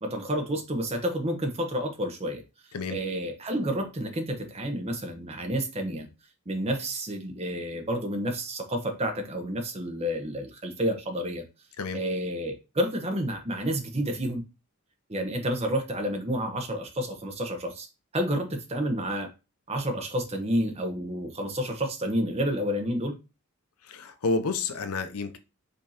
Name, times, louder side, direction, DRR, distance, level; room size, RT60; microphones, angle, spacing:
voice 1, 0.0-2.4 2.9-6.1 6.5-11.4 11.9-14.4 15.1-17.9 18.1-19.3 19.7-23.1, equal, 30° right, 0.9 m, -30 dB
voice 2, 23.8-25.4, left 3 dB, 80° left, 0.6 m, -30 dB
5.2 x 3.5 x 2.8 m
head